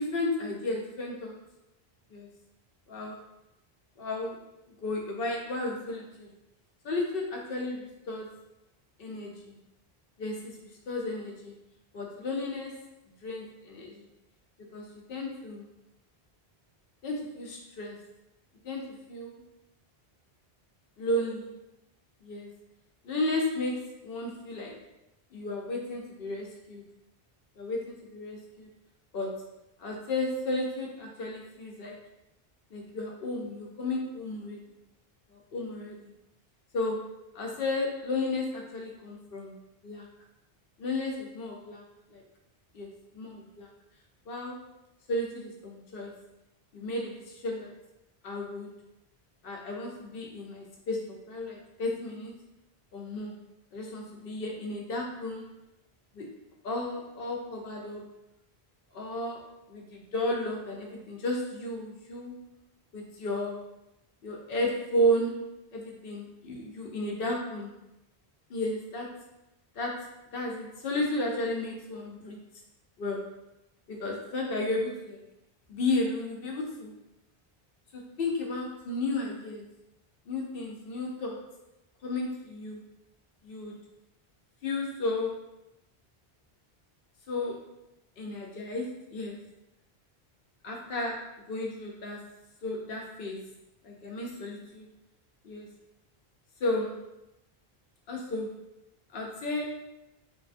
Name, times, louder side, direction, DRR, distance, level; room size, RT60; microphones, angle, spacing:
voice 1, 0.0-1.4 2.1-2.3 2.9-3.2 4.0-4.4 4.8-6.3 6.8-8.3 9.0-9.5 10.2-11.5 11.9-12.8 13.2-14.0 14.7-15.7 17.0-18.0 18.6-19.4 21.0-21.5 22.2-22.5 23.0-24.8 25.3-26.8 27.6-28.7 29.1-29.5 29.8-32.0 32.7-34.6 35.5-36.1 36.7-37.1 37.3-39.6 39.8-40.1 40.8-41.8 42.1-42.2 42.7-43.7 44.3-44.6 45.1-46.2 46.7-47.7 48.2-48.7 49.4-52.4 52.9-53.3 53.7-55.5 56.1-56.3 56.6-58.1 58.9-62.4 62.9-63.6 64.2-65.5 65.7-67.7 68.5-69.2 69.8-72.4 73.0-73.3 73.9-75.2 75.7-76.9 77.9-79.6 80.3-81.4 82.0-82.8 83.4-83.8 84.6-85.5 87.3-87.6 88.2-89.4 90.6-92.3 92.6-93.4 93.8-94.9 95.4-95.7 96.6-97.0 98.1-98.5 99.1-99.9, left 1 dB, 70° left, 0 dB, 0.7 m, -33 dB
2.9 x 2.3 x 2.5 m, 0.90 s
omnidirectional pair, 1.0 m